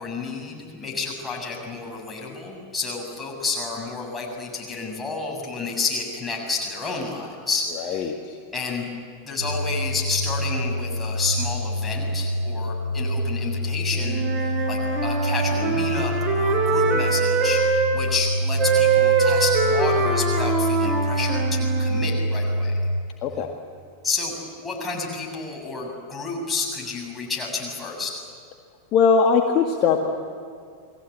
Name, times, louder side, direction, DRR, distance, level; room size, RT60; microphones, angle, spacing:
voice 1, 0.0-8.1 8.5-8.9 9.2-22.9 24.0-28.2, left 4 dB, 15° left, -1 dB, 7.0 m, -30 dB
voice 2, 7.8-8.4 23.2-23.5 28.9-30.1, left 5 dB, 35° left, 3 dB, 1.9 m, -20 dB
sound 1, 9.4-23.0, equal, 90° left, 1.5 m, -26 dB
Wind instrument woodwind instrument, 14.0-17.9 18.6-22.1, right 5 dB, 30° right, 4.9 m, -23 dB
29.5 x 21.0 x 8.6 m, 2.1 s
figure-of-eight pair, 90°, 0 cm